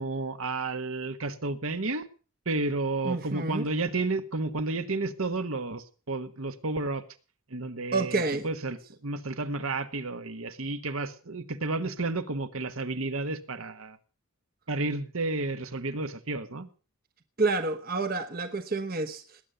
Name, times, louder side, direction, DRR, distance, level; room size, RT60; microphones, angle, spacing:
voice 1, 0.0-2.1 2.4-7.0 7.5-8.8 9.0-14.0 14.7-16.7, right 3 dB, 70° right, 1.4 m, -31 dB
voice 2, 3.0-3.6 7.9-8.5 17.4-19.4, right 3 dB, 40° right, 1.0 m, -29 dB
19.5 x 9.1 x 6.8 m
head